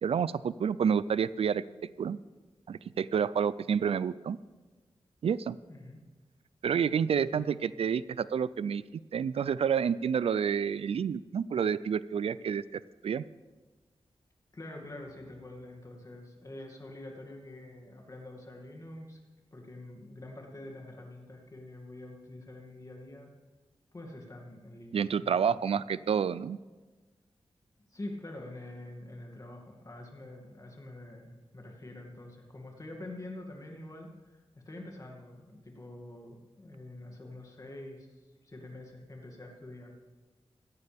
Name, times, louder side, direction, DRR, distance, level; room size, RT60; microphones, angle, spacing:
voice 1, 0.0-1.6 2.0-2.2 2.7-4.4 5.2-5.6 6.6-8.8 9.1-13.2 24.9-26.6, right 7 dB, 75° right, 18 dB, 0.4 m, -29 dB
voice 2, 5.7-6.0 7.3-7.6 14.5-19.2 19.5-23.3 23.9-25.6 27.9-39.9, left 1 dB, 35° left, 1 dB, 2.4 m, -46 dB
16.5 x 14.0 x 3.5 m, 1.2 s
wide cardioid pair, 105°, 10 cm